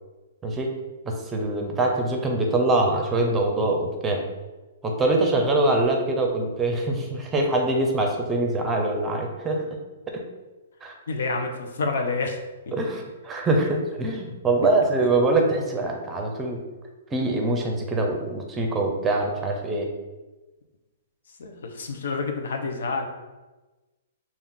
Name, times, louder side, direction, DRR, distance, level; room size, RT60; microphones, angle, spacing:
voice 1, 1.0-4.2 4.8-9.6 10.1-10.2 10.8-11.0 12.7-16.6 17.1-19.9, right 2 dB, 10° right, 2 dB, 0.6 m, -24 dB
voice 2, 11.1-12.4 12.7-12.8 15.0-15.1 21.4-23.1, left 3 dB, 75° left, 4 dB, 0.8 m, -28 dB
5.4 x 2.5 x 3.7 m, 1.2 s
hypercardioid pair, 160°, 0 cm